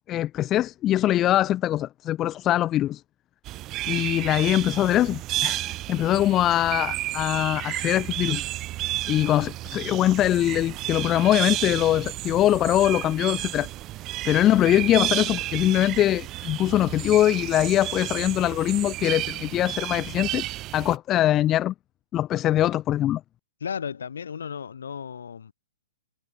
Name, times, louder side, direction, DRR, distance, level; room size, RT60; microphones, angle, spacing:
voice 1, 0.1-3.0 3.9-8.4 9.1-13.7 14.2-20.4 20.7-21.7 22.1-23.2, left 13 dB, 25° left, 0.3 m, -22 dB
sound 1, 3.5-21.0, right 16 dB, 30° right, 0.6 m, -32 dB
voice 2, 23.6-25.5, left 7 dB, 70° left, 2.0 m, -34 dB
hypercardioid pair, 125°, 0 cm